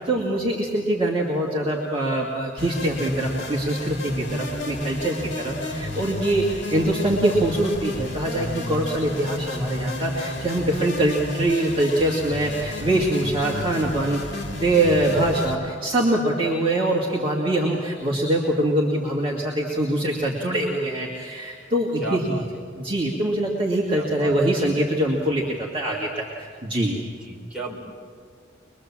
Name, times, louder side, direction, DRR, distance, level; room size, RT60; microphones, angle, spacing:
voice 1, 0.1-22.4 22.8-27.0, right 1 dB, 30° right, -4 dB, 2.2 m, -24 dB
sound 1, 2.6-15.5, left 2 dB, 60° left, 2.4 m, -31 dB
voice 2, 15.1-15.4 22.0-22.4 23.9-24.8 25.2-25.4 27.2-27.8, right 2 dB, 5° right, -4 dB, 4.4 m, -35 dB
23.0 x 22.5 x 7.4 m, 2.1 s
head